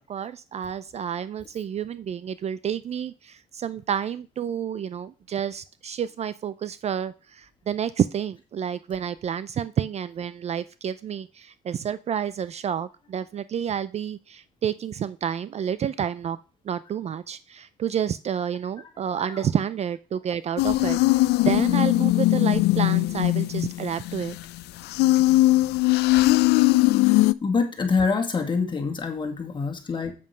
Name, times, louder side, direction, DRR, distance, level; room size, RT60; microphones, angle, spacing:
voice 1, 0.1-16.4 16.6-24.4, right 8 dB, 40° right, 16 dB, 0.4 m, -29 dB
sound 1, 20.6-24.6 24.9-27.3, left 18 dB, 80° left, 0.4 m, -20 dB
voice 2, 27.4-30.1, left 4 dB, 30° left, 4 dB, 2.2 m, -25 dB
7.8 x 7.3 x 4.9 m, 0.34 s
cardioid pair, 110°, 17 cm